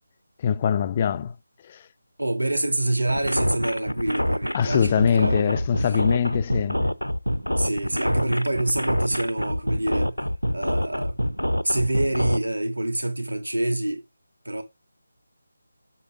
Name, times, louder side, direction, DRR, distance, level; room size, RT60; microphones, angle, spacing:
voice 1, 0.4-1.3 1.6-1.8 4.5-6.9, left 7 dB, 25° left, 0.4 m, -23 dB
voice 2, 2.2-5.6 5.8-6.0 7.6-10.2 10.5-11.2 11.6-14.0 14.4-14.6, right 1 dB, 75° right, 2.6 m, -26 dB
sound 1, 3.1-12.4, equal, 85° left, 0.8 m, -25 dB
8.3 x 6.9 x 3.7 m
figure-of-eight pair, 155°, 0 cm